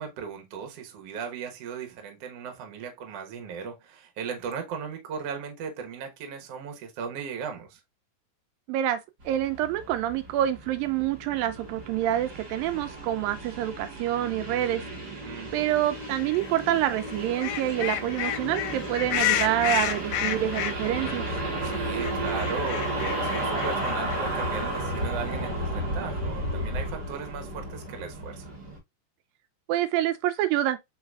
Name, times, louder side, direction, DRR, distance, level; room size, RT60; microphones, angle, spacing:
voice 1, 0.0-7.8 15.2-15.7 21.6-28.5, right 6 dB, 60° right, 1.7 m, -37 dB
voice 2, 8.7-9.0 9.3-14.8 15.5-21.3 29.7-30.8, right 12 dB, 85° right, 2.3 m, -27 dB
sound 1, 9.2-28.8, right 1 dB, 45° right, 1.3 m, -33 dB
sound 2, 16.2-16.5 16.9-21.2 21.5-21.6 21.7-24.5, left 12 dB, 80° left, 2.2 m, -30 dB
4.8 x 4.0 x 2.3 m
omnidirectional pair, 4.0 m